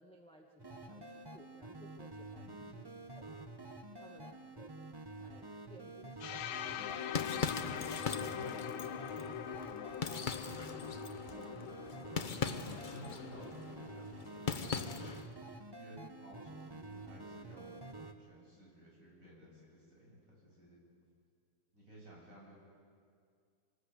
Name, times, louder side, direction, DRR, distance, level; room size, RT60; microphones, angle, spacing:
voice 1, 0.0-3.3 4.0-4.8 5.1-6.5, equal, 5° left, 1 dB, 1.2 m, -60 dB
sound 1, 0.6-18.1, right 2 dB, 20° right, 0.6 m, -49 dB
sound 2, 6.2-14.0, left 10 dB, 80° left, 1.6 m, -43 dB
sound 3, 6.7-15.3, left 5 dB, 55° left, 0.5 m, -41 dB
voice 2, 8.2-8.5 11.2-11.5 11.9-15.0 15.8-17.8 18.2-20.8 21.7-22.5, equal, 40° right, -4 dB, 8.2 m, -55 dB
26.0 x 19.5 x 8.2 m, 2.2 s
omnidirectional pair, 2.2 m